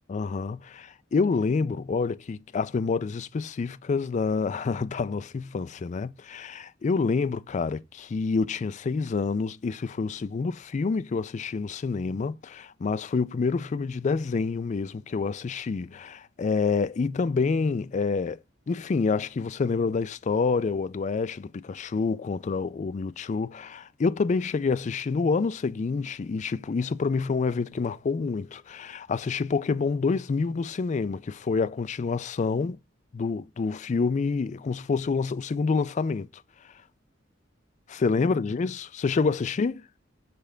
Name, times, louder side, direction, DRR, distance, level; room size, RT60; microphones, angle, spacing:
voice 1, 0.1-18.4 18.7-32.8 33.1-36.3 37.9-39.8, left 4 dB, 40° left, 0.4 m, -27 dB
6.8 x 3.3 x 5.0 m
head